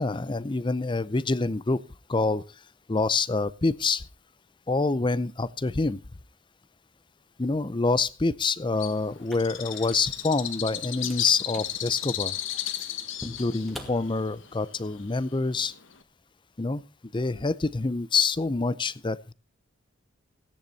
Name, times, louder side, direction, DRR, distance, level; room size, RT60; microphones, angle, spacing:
voice 1, 0.0-1.8 2.1-2.4 2.9-4.0 4.7-6.0 7.4-12.4 13.2-15.7 16.6-16.8 17.1-19.3, left 3 dB, 25° left, 19 dB, 0.6 m, -26 dB
Bird, 8.8-16.0, left 11 dB, 65° left, 1.3 m, -35 dB
sound 1, 9.2-14.7, equal, ahead, 2.2 m, -47 dB
17.0 x 10.0 x 4.1 m, 0.32 s
head